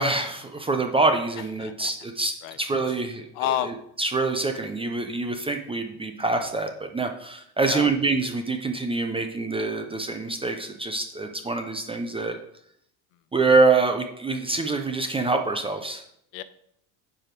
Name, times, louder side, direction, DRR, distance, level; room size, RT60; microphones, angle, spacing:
voice 1, 0.0-3.3 4.0-12.4 13.3-16.0, right 3 dB, 15° right, 5 dB, 0.3 m, -25 dB
voice 2, 1.4-1.9 2.4-2.6 3.3-3.8 7.6-7.9 16.3-16.4, left 12 dB, 90° left, 13 dB, 0.8 m, -30 dB
9.8 x 4.8 x 4.5 m, 0.73 s
cardioid pair, 135°, 50 cm